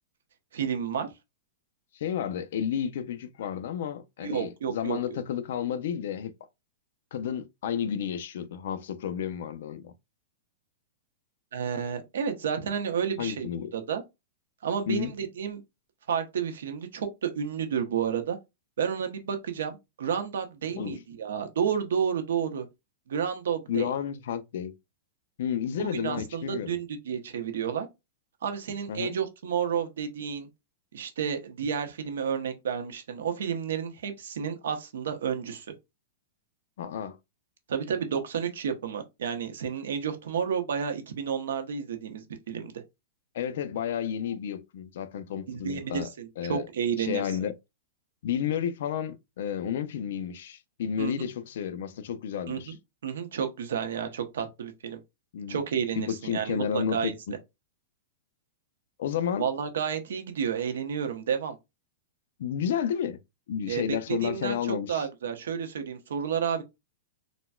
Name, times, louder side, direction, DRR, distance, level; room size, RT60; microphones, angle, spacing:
voice 1, 0.5-1.1 4.2-5.0 11.5-14.0 14.6-15.6 16.1-18.4 18.8-22.7 23.1-23.9 25.8-27.9 28.4-30.5 30.9-35.7 37.7-42.7 45.5-47.2 51.0-51.3 52.5-52.8 53.0-55.0 55.5-57.1 59.4-61.6 63.7-63.8 64.2-66.6, right 7 dB, 90° right, 0.8 m, -31 dB
voice 2, 1.9-6.3 7.1-9.9 13.2-13.7 14.9-15.1 20.8-21.0 23.7-24.7 25.4-26.8 28.9-29.2 36.8-37.2 43.3-46.1 46.4-46.7 47.0-47.5 48.2-52.7 55.3-55.6 56.0-57.1 59.0-59.5 62.4-63.2 63.5-65.1, left 8 dB, 60° left, 0.4 m, -31 dB
3.9 x 2.2 x 2.3 m
supercardioid pair, 170°, 0 cm